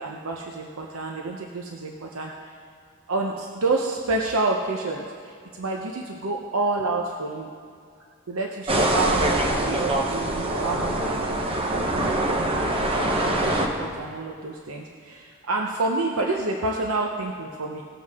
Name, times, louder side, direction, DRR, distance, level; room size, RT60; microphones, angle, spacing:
voice 1, 0.0-2.6 3.1-7.5 8.3-11.4 11.7-11.9 12.2-17.8, right 3 dB, 75° right, 0 dB, 0.8 m, -29 dB
sound 1, 8.7-13.7, right 1 dB, 25° right, 1.0 m, -24 dB
18.5 x 7.5 x 3.6 m, 2.2 s
head